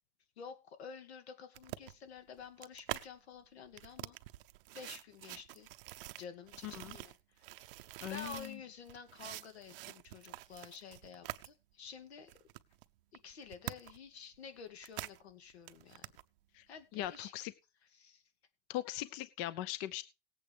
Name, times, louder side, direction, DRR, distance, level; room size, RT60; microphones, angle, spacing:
voice 1, 0.4-4.2 4.7-5.7 6.2-7.8 8.1-12.4 13.1-16.1 16.7-17.3 17.9-18.2, left 6 dB, 85° left, 8 dB, 2.4 m, -50 dB
sound 1, 1.5-3.1 3.7-8.5 8.9-11.5 11.9-12.0 12.3-14.1 14.3-15.2 15.5-16.2 17.0-17.2, right 16 dB, 60° right, 0.7 m, -46 dB
voice 2, 6.6-7.0 8.0-8.6 16.5-16.6 16.9-17.5 18.7-20.0, left 14 dB, 35° left, 16 dB, 0.5 m, -40 dB
18.0 x 8.5 x 3.4 m, 0.28 s
supercardioid pair, 150°, 31 cm